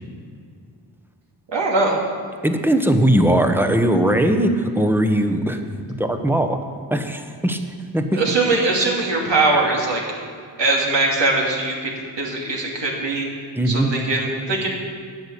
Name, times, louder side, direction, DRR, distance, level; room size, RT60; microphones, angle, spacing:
voice 1, 1.5-2.0 8.1-10.0 10.6-11.9 12.2-13.3 13.7-14.7, right 2 dB, 65° right, -2 dB, 2.8 m, -21 dB
voice 2, 2.4-5.6 6.0-6.6 6.9-7.6 7.9-8.2 13.5-13.9, right 1 dB, 5° right, 6 dB, 1.1 m, -19 dB
10.5 x 6.9 x 8.5 m, 2.1 s
cardioid pair, 65°, 45 cm